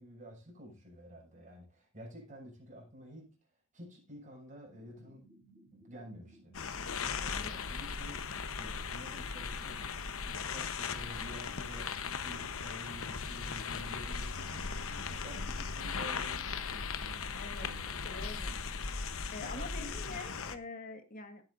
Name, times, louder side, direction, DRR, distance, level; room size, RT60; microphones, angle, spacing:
voice 1, 0.0-3.3 3.7-5.3 5.7-8.3 8.5-18.1 19.4-20.5, equal, 35° right, 6.4 m, -51 dB
sound 1, 4.7-9.8, right 2 dB, 5° right, 3.9 m, -61 dB
sound 2, 6.5-20.6, left 5 dB, 65° left, 1.0 m, -38 dB
voice 2, 7.3-7.6 17.3-17.7 18.0-18.6 19.3-21.4, left 3 dB, 40° left, 1.8 m, -45 dB
17.5 x 8.7 x 2.6 m
head